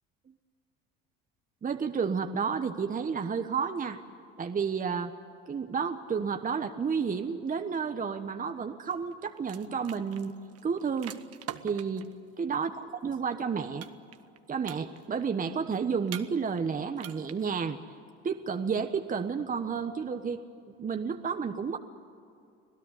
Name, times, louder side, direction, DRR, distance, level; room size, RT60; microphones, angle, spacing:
voice 1, 1.6-4.0 4.4-5.1 5.5-10.3 10.6-11.2 11.6-12.1 12.4-13.9 14.5-17.8 18.2-20.4 20.8-21.8, right 6 dB, 25° right, 7 dB, 1.3 m, -31 dB
sound 1, 8.9-9.1 9.4-12.1 13.8-14.4 14.6-15.2 16.1-16.7 17.0-17.5, right 11 dB, 50° right, 1.3 m, -43 dB
26.0 x 17.0 x 9.6 m, 2.5 s
supercardioid pair, 80°, 30 cm